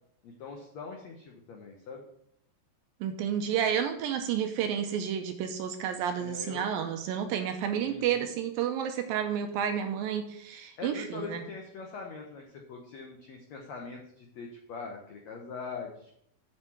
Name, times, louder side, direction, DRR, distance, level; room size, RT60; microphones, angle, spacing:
voice 1, 0.2-2.0 6.2-6.6 7.8-8.3 10.8-16.1, left 4 dB, 80° left, 2 dB, 1.5 m, -42 dB
voice 2, 3.0-11.4, right 8 dB, 80° right, 6 dB, 2.2 m, -31 dB
7.6 x 6.7 x 6.0 m, 0.72 s
omnidirectional pair, 4.6 m